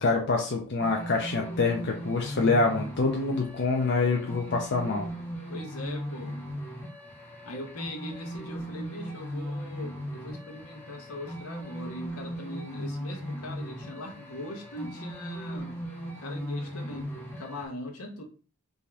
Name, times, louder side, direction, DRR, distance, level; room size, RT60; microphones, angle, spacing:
voice 1, 0.0-5.1, left 3 dB, 55° left, 1 dB, 0.5 m, -26 dB
sound 1, 0.8-17.6, equal, 10° left, 0.8 m, -38 dB
voice 2, 5.5-6.4 7.4-15.8 16.2-18.2, left 1 dB, 80° left, 2 dB, 1.0 m, -40 dB
3.5 x 2.7 x 3.3 m, 0.38 s
head